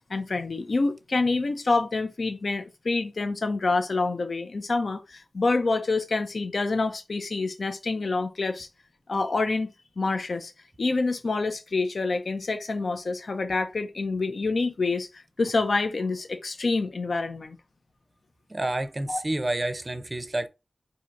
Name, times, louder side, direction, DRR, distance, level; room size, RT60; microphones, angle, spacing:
voice 1, 0.1-8.7 9.1-10.5 10.8-17.6 19.1-19.2, left 3 dB, 70° left, 0.5 m, -27 dB
voice 2, 18.5-20.5, right 1 dB, 35° right, 0.5 m, -29 dB
4.4 x 2.7 x 2.5 m
wide cardioid pair, 95°, 0 cm